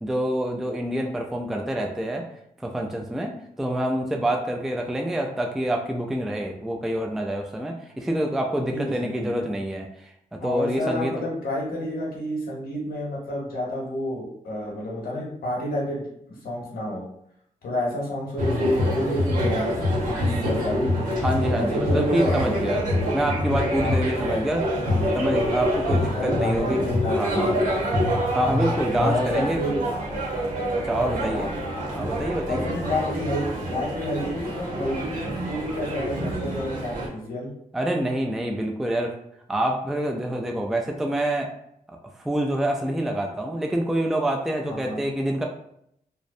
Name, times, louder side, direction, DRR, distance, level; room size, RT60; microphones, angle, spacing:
voice 1, 0.0-2.3 2.6-11.2 21.2-22.9 23.1-24.7 25.1-26.8 27.1-27.5 28.3-29.6 30.8-31.5 32.0-32.7 37.7-39.2 39.5-41.5 42.2-45.4, right 1 dB, ahead, 2 dB, 0.3 m, -26 dB
voice 2, 10.4-16.1 16.4-17.0 17.6-20.9 21.5-22.6 23.0-23.3 23.8-24.4 24.8-25.2 26.0-27.7 29.0-29.9 31.0-31.5 32.5-37.5 44.7-45.1, left 1 dB, 90° left, -4 dB, 0.8 m, -29 dB
sound 1, 18.4-37.1, equal, 65° right, 0.9 m, -26 dB
2.5 x 2.0 x 2.5 m, 0.72 s
cardioid pair, 70°, 15 cm